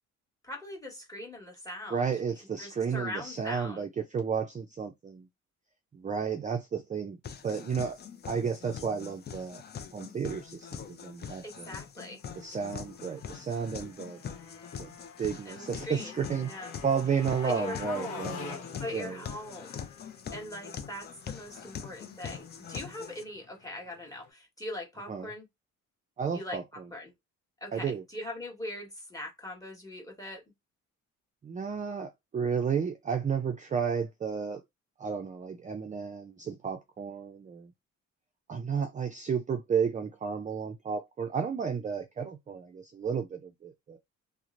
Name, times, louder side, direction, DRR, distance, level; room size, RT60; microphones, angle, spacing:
voice 1, 0.4-2.2 2.6-3.9 11.4-12.2 15.4-16.7 17.1-18.4 18.8-19.9 20.3-25.4 26.3-26.6 26.9-27.1 27.6-30.4, left 1 dB, 10° left, 1.3 m, -41 dB
voice 2, 1.9-3.9 4.1-5.2 5.9-7.2 7.4-8.0 8.3-9.6 9.9-11.7 12.4-14.2 14.8-14.9 15.2-16.5 16.8-18.6 18.9-19.2 25.1-25.3 26.2-26.6 27.7-28.0 31.4-34.6 35.0-37.7 38.5-44.0, right 6 dB, 25° right, 0.4 m, -32 dB
sound 1, 7.2-23.2, left 7 dB, 35° left, 0.4 m, -43 dB
Motorcycle, 12.2-24.3, left 7 dB, 75° left, 0.9 m, -48 dB
2.8 x 2.1 x 2.5 m
cardioid pair, 90°, 30 cm